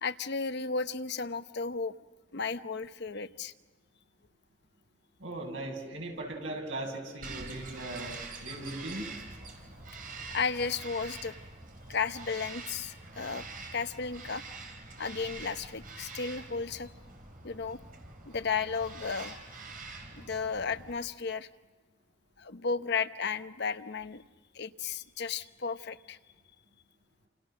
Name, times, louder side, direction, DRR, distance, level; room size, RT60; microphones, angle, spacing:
voice 1, 0.0-1.9 2.3-3.5 10.3-11.3 11.9-13.4 13.7-14.4 15.0-16.9 17.4-17.8 18.3-19.4 20.1-21.5 22.4-24.2 24.5-26.2, left 5 dB, 60° left, 11 dB, 0.9 m, -34 dB
voice 2, 5.2-8.1 8.4-9.1, right 1 dB, 85° right, 1 dB, 7.4 m, -38 dB
Bird vocalization bird call bird song, 7.2-20.9, right 3 dB, 50° right, 4.5 m, -45 dB
29.0 x 29.0 x 6.5 m, 1.4 s
head